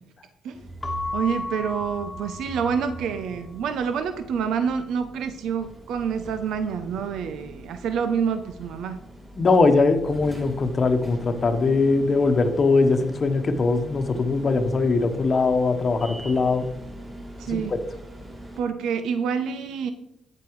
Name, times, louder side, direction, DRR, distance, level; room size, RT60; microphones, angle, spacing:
sound 1, 0.5-18.6, right 1 dB, 25° right, 3.5 m, -42 dB
Keyboard (musical) / Bell, 0.8-3.2, left 2 dB, 25° left, 1.2 m, -34 dB
voice 1, 1.1-9.0 17.4-17.7 18.6-19.9, right 6 dB, 80° right, 9 dB, 0.6 m, -27 dB
voice 2, 9.4-16.7 17.5-17.6, left 3 dB, 40° left, 7 dB, 1.0 m, -21 dB
8.8 x 8.4 x 3.1 m, 0.82 s
cardioid pair, 90°, 0 cm